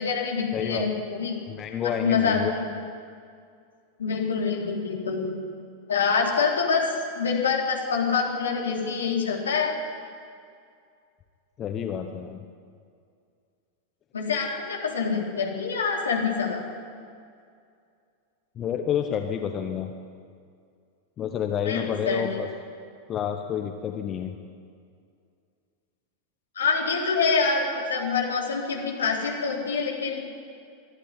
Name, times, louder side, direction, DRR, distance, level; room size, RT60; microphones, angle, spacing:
voice 1, 0.0-1.4 2.0-2.7 4.0-5.3 5.9-6.9 7.2-9.8 14.1-16.6 21.6-22.2 26.6-30.2, left 5 dB, 70° left, 0 dB, 3.8 m, -26 dB
voice 2, 0.5-0.9 1.5-2.5 11.6-12.4 18.6-19.9 21.2-22.5 23.1-24.3, left 8 dB, 30° left, 5 dB, 1.2 m, -29 dB
23.0 x 12.0 x 9.9 m, 2.3 s
figure-of-eight pair, 90°, 0 cm